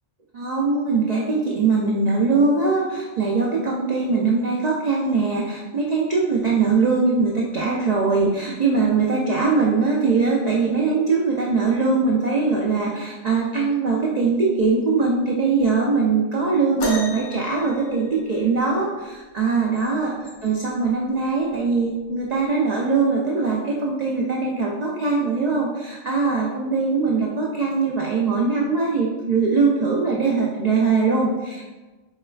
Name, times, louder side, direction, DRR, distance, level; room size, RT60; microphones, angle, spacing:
voice 1, 0.3-31.7, right 4 dB, 90° right, -3 dB, 0.3 m, -21 dB
sound 1, 16.8-18.7 20.4-20.5 21.3-21.5 22.4-22.5, left 1 dB, 85° left, 1.2 m, -32 dB
4.6 x 3.2 x 2.3 m, 1.2 s
omnidirectional pair, 1.3 m